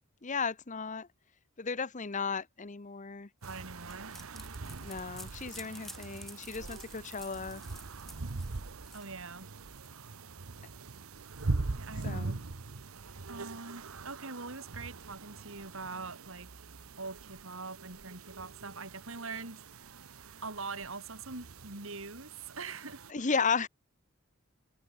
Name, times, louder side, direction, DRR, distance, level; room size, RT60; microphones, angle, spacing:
voice 1, 0.2-1.1 1.6-3.3 4.8-7.6 12.0-12.4 23.1-23.7, left 5 dB, 35° left, 0.9 m, -34 dB
sound 1, 3.4-9.9, equal, ahead, 5.9 m, -52 dB
sound 2, 3.4-23.1, right 3 dB, 85° right, 1.0 m, -42 dB
voice 2, 3.5-4.9 8.9-9.5 11.8-12.4 13.3-16.5 17.0-20.0 20.4-23.0, right 4 dB, 70° right, 3.2 m, -43 dB
head